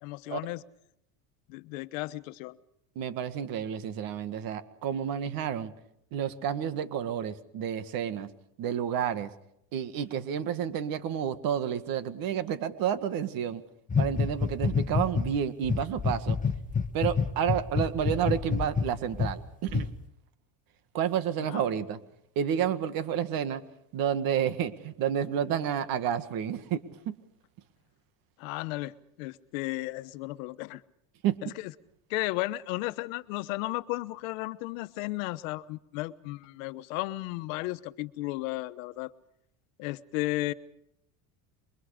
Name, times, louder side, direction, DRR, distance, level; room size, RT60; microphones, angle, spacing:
voice 1, 0.0-0.6 1.5-2.6 21.5-21.6 28.4-30.8 31.4-31.7 32.1-39.1 39.8-40.5, left 19 dB, 80° left, 13 dB, 1.1 m, -34 dB
voice 2, 3.0-5.7 6.1-8.3 8.6-9.3 9.7-13.6 14.0-16.4 16.9-19.9 20.9-22.0 22.4-23.6 23.9-27.2 31.2-31.4, right 9 dB, 60° right, 11 dB, 2.0 m, -30 dB
sound 1, 13.9-15.3 15.6-19.3 19.7-19.9, left 5 dB, 20° left, 1.3 m, -27 dB
28.0 x 23.5 x 5.1 m, 0.74 s
supercardioid pair, 120°, 39 cm